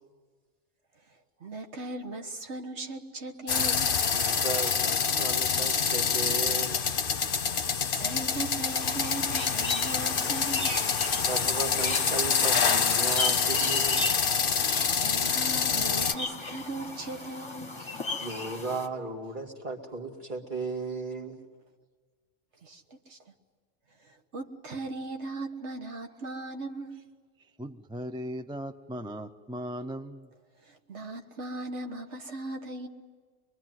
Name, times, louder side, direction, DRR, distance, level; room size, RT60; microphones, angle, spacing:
voice 1, 1.4-4.0 7.1-7.2 7.6-10.8 14.6-17.7 22.6-23.2 24.0-27.0 30.6-32.9, right 2 dB, 65° right, 1.6 m, -38 dB
sound 1, 3.5-16.1, left 6 dB, 50° left, 1.1 m, -26 dB
voice 2, 4.1-6.8 11.3-14.1 18.2-21.4, right 3 dB, 40° right, 2.5 m, -35 dB
sound 2, 8.8-18.9, left 3 dB, 25° left, 1.5 m, -36 dB
voice 3, 27.6-30.3, equal, 5° right, 0.5 m, -38 dB
24.0 x 22.5 x 9.4 m
omnidirectional pair, 1.3 m